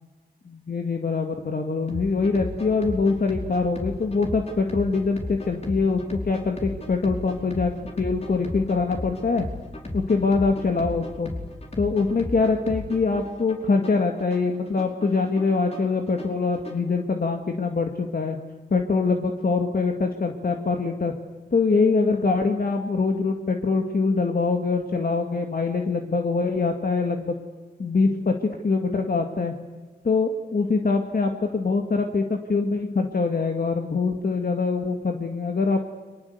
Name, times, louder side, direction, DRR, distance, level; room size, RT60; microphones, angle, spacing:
voice 1, 0.5-7.7 8.0-9.5 9.9-11.3 11.8-18.4 18.7-21.1 21.5-27.4 27.8-28.3 28.6-29.5 30.0-35.8, left 4 dB, 55° left, 4 dB, 2.2 m, -24 dB
sound 1, 1.9-16.9, left 1 dB, 35° left, 4.8 m, -36 dB
29.5 x 24.0 x 8.1 m, 1.4 s
wide cardioid pair, 90°, 18 cm